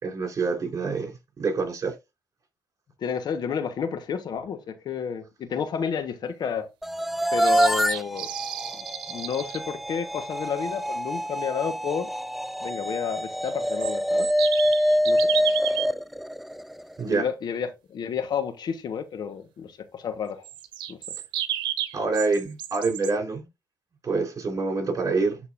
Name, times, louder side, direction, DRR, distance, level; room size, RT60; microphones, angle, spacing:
voice 1, 0.0-1.1 1.4-1.9 17.0-17.3 21.9-23.5 24.0-25.4, right 4 dB, 45° right, 4.2 m, -26 dB
voice 2, 3.0-6.7 7.3-8.3 8.8-12.1 12.6-14.3 15.0-15.2 17.1-20.5 20.9-21.0, left 7 dB, 65° left, 1.4 m, -31 dB
sound 1, 6.8-17.0, equal, ahead, 0.4 m, -26 dB
sound 2, 7.2-9.6 13.4-15.9 20.4-23.1, right 11 dB, 90° right, 1.0 m, -32 dB
11.5 x 4.1 x 2.6 m
cardioid pair, 75°, 8 cm